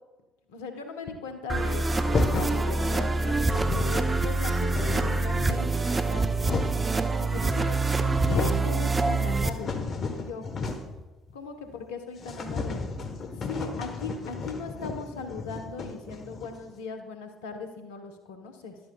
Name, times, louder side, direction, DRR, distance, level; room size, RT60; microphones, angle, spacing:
voice 1, 0.5-6.3 7.1-9.8 10.1-10.5 11.3-12.8 13.4-18.8, left 4 dB, 80° left, 6 dB, 1.1 m, -38 dB
sound 1, 1.5-9.5, right 3 dB, 25° right, 0.8 m, -26 dB
sound 2, 2.1-2.6 3.2-3.3 3.5-4.1 4.4-5.3 6.0-6.9 7.7-7.8 8.1-8.7 9.1-11.0 11.3-11.4 11.7-11.8 12.2-16.7, left 4 dB, 45° left, 1.2 m, -33 dB
12.5 x 12.0 x 2.3 m, 1.1 s
hypercardioid pair, 55°, 0 cm